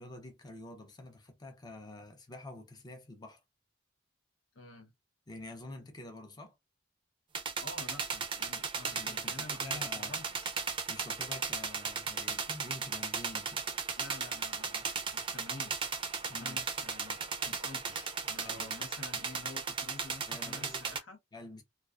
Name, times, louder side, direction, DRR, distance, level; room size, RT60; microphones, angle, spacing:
voice 1, 0.0-3.4 5.3-6.6 8.9-10.2 10.9-13.6 16.3-16.6 18.4-18.8 20.2-20.8 21.3-21.6, left 2 dB, 20° left, 0.6 m, -47 dB
voice 2, 4.5-4.9 7.4-10.6 14.0-14.8 15.1-15.8 16.4-17.2 17.4-21.2, left 2 dB, 80° left, 0.7 m, -49 dB
sound 1, 7.3-21.0, right 5 dB, 25° right, 0.4 m, -36 dB
2.3 x 2.3 x 2.3 m
head